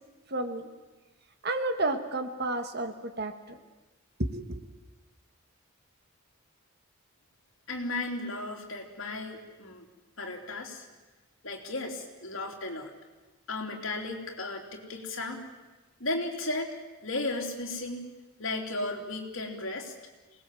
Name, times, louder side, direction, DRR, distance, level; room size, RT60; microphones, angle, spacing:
voice 1, 0.3-0.7 1.4-3.6 4.2-4.7, right 2 dB, 45° right, 8 dB, 1.6 m, -31 dB
voice 2, 7.7-9.9 10.2-10.9 11.4-12.9 13.5-15.4 16.0-16.8 17.0-18.1 18.4-19.9, left 2 dB, 60° left, 2 dB, 3.3 m, -35 dB
26.5 x 19.5 x 7.7 m, 1.2 s
head